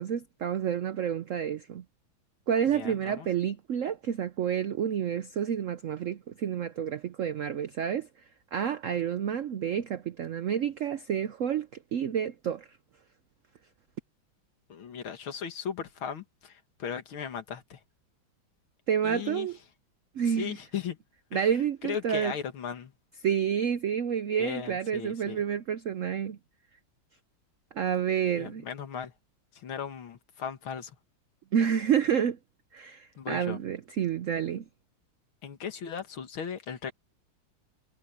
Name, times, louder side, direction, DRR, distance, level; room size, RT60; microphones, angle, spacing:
voice 1, 0.0-1.8 2.5-8.1 8.5-12.6 18.9-19.6 20.1-20.5 21.3-22.3 23.2-26.4 27.7-28.6 31.5-32.4 32.7-34.6, right 8 dB, 85° right, 0.6 m, -29 dB
voice 2, 2.7-3.3 14.7-17.8 19.0-19.5 20.3-21.0 21.3-22.9 24.4-25.4 28.4-29.1 29.5-31.0 33.2-33.6 35.4-36.9, left 7 dB, 90° left, 2.5 m, -37 dB
omnidirectional pair, 2.2 m